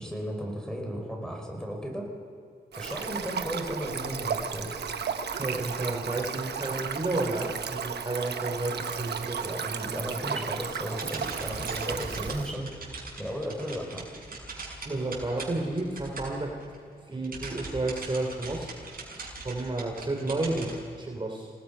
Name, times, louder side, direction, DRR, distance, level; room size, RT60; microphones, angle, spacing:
voice 1, 0.0-2.1 2.7-4.8 9.4-12.7 13.2-14.1 20.4-20.7, equal, 5° left, 1 dB, 5.4 m, -35 dB
Stream, 2.7-12.5, right 6 dB, 85° right, 1.1 m, -34 dB
voice 2, 5.4-9.6 14.8-16.5 17.1-18.8 19.4-20.7 21.0-21.5, right 2 dB, 30° right, 0 dB, 3.2 m, -31 dB
sound 1, 11.0-16.8 17.1-20.8, right 3 dB, 60° right, 6.7 m, -41 dB
27.5 x 18.5 x 5.7 m, 2.3 s
wide cardioid pair, 90°, 17 cm